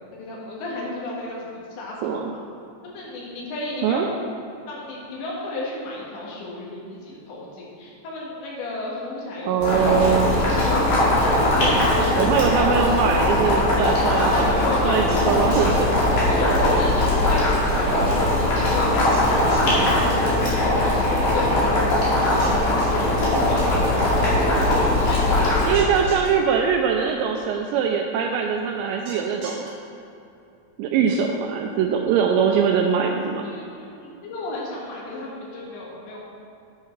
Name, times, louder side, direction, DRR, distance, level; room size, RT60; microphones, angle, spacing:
voice 1, 0.1-2.3 2.8-4.1 4.7-9.6 10.0-12.5 14.3-15.2 16.3-26.0 33.4-36.2, left 2 dB, 70° left, -4 dB, 3.8 m, -33 dB
voice 2, 9.5-10.3 12.2-14.5 14.8-15.9 25.7-29.7 30.8-33.5, right 7 dB, 85° right, 2 dB, 2.5 m, -22 dB
Boiling, 9.6-25.7, left 1 dB, 55° left, 3.6 m, -20 dB
sound 1, 15.1-15.8 19.1-19.7 22.4-23.0 25.7-26.3 29.1-29.7, right 3 dB, 55° right, 2.4 m, -39 dB
10.0 x 9.8 x 3.2 m, 2.6 s
omnidirectional pair, 5.5 m